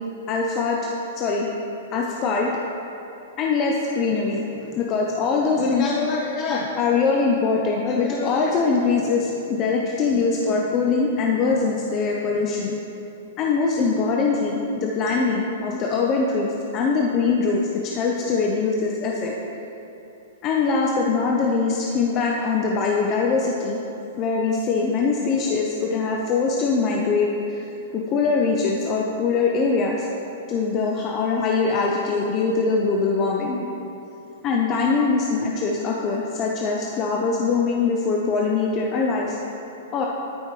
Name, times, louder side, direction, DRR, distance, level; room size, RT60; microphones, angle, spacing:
voice 1, 0.3-1.5 1.9-2.5 3.4-4.4 4.8-12.7 13.4-19.3 20.4-23.8 24.2-27.6 27.9-30.1 30.5-33.6 34.4-39.4 39.9-40.1, left 4 dB, 35° left, -1 dB, 0.7 m, -22 dB
12.0 x 5.2 x 3.2 m, 2.9 s
hypercardioid pair, 130°, 0 cm